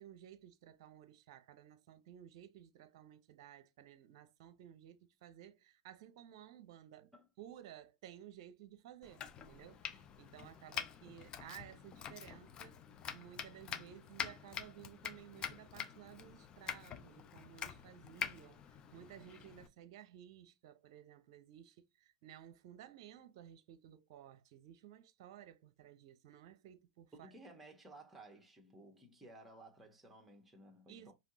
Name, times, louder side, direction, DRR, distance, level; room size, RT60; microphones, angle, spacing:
voice 1, 0.0-12.8 13.1-27.3 30.9-31.1, right 11 dB, 50° right, 0.7 m, -56 dB
Domestic sounds home sounds, 9.0-19.7, left 8 dB, 30° left, 0.6 m, -46 dB
voice 2, 27.1-31.1, right 2 dB, 5° right, 1.3 m, -57 dB
5.2 x 2.8 x 2.7 m
figure-of-eight pair, 100°, 3 cm